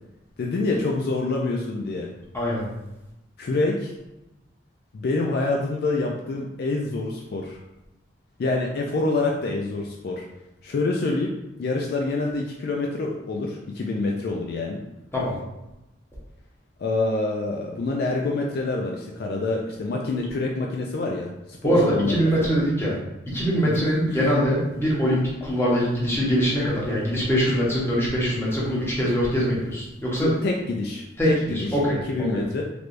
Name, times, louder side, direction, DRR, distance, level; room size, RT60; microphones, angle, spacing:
voice 1, 0.4-2.1 3.4-3.9 4.9-7.6 8.4-10.3 10.6-11.3 11.6-14.8 16.8-22.6 23.6-24.3 30.2-32.6, left 3 dB, 50° left, -1 dB, 0.3 m, -26 dB
voice 2, 21.6-23.0 23.3-30.3 31.2-32.4, equal, 10° left, -6 dB, 0.9 m, -23 dB
3.3 x 3.2 x 2.5 m, 0.96 s
head